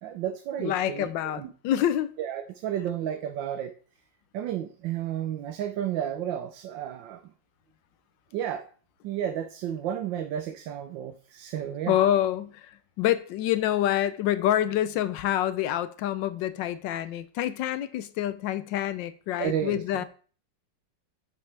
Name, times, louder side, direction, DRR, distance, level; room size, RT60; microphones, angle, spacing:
voice 1, 0.0-1.5 2.2-3.7 4.3-7.2 8.3-8.7 9.0-12.0 19.4-20.0, right 10 dB, 90° right, 1.4 m, -32 dB
voice 2, 0.6-2.1 11.9-20.0, left 12 dB, 85° left, 1.4 m, -27 dB
9.2 x 6.8 x 3.3 m
omnidirectional pair, 2.0 m